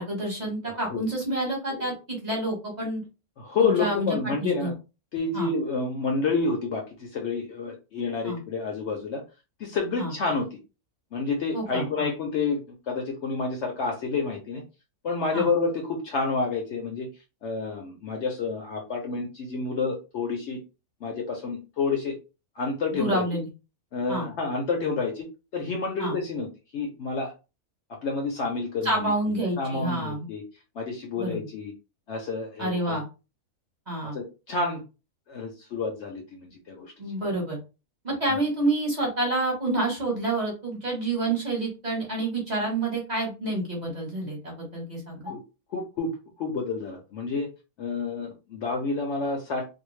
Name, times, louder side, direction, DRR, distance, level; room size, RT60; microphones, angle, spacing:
voice 1, 0.0-3.0 3.6-4.7 5.3-5.5 8.2-8.4 10.0-10.1 11.5-12.1 15.3-15.5 22.9-23.5 24.1-24.3 26.0-26.1 28.8-30.3 31.2-31.4 32.6-33.0 33.9-34.2 37.0-37.6 38.0-45.3, right 2 dB, 35° right, -2 dB, 0.9 m, -28 dB
voice 2, 3.4-4.7 5.1-9.2 9.6-10.5 11.1-14.6 15.0-17.1 17.4-20.6 21.0-22.1 22.6-23.2 23.9-25.3 25.5-26.5 26.7-27.3 28.0-28.9 29.6-30.4 30.8-31.7 32.1-33.0 34.1-34.8 35.3-36.9 38.3-38.4 45.3-45.4 45.7-47.5 47.8-49.7, left 4 dB, 65° left, 2 dB, 0.8 m, -29 dB
2.6 x 2.1 x 3.1 m, 0.30 s
omnidirectional pair, 1.5 m